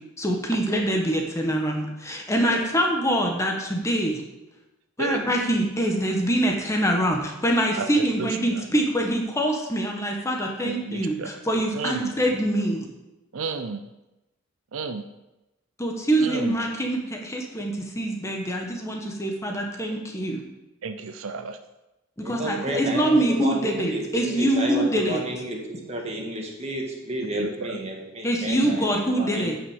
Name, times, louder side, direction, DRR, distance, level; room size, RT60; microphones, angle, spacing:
voice 1, 0.2-4.2 5.0-11.1 11.5-12.9 15.8-20.4 22.2-25.2 28.2-29.6, right 1 dB, 15° left, 1 dB, 1.2 m, -24 dB
voice 2, 7.8-8.7 10.6-11.4 11.7-12.2 13.3-13.9 14.7-15.1 16.2-16.6 20.8-21.6 27.4-27.8, right 4 dB, 70° right, 10 dB, 0.6 m, -33 dB
voice 3, 22.2-29.6, right 1 dB, 30° right, 1 dB, 1.8 m, -31 dB
9.7 x 5.7 x 7.3 m, 0.99 s
head